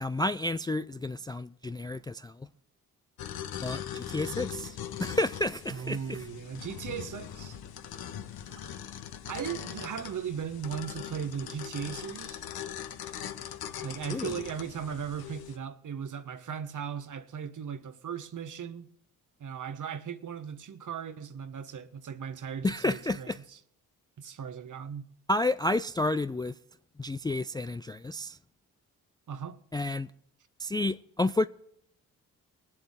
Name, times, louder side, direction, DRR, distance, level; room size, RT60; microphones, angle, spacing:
voice 1, 0.0-2.5 3.6-6.2 14.1-14.4 22.6-23.4 25.3-26.6 27.0-28.4 29.7-30.1 30.6-31.5, left 2 dB, 10° left, 0.3 m, -30 dB
sound 1, 3.2-15.6, left 9 dB, 60° left, 1.1 m, -41 dB
voice 2, 5.7-7.6 8.5-8.8 9.3-12.4 13.8-18.9 19.4-23.6 24.2-25.0 29.3-29.6, right 7 dB, 45° right, 1.2 m, -37 dB
21.5 x 7.8 x 3.7 m
hypercardioid pair, 45°, 41 cm